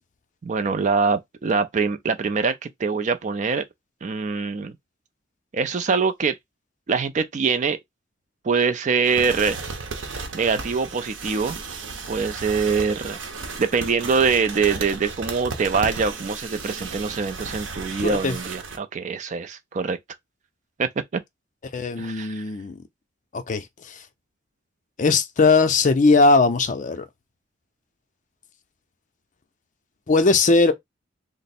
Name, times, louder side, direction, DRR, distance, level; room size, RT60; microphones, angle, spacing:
voice 1, 0.4-3.6 4.0-4.7 5.5-6.4 6.9-7.8 8.4-9.6 10.3-11.6 12.1-13.2 13.6-20.0 20.8-20.9 22.0-22.4, right 5 dB, 40° right, 0.4 m, -24 dB
sound 1, 9.0-18.8, right 4 dB, 75° right, 0.8 m, -34 dB
voice 2, 18.0-18.4 21.7-22.8 23.3-24.0 25.0-27.0 30.1-30.7, left 3 dB, 40° left, 0.5 m, -19 dB
3.1 x 2.0 x 4.1 m
head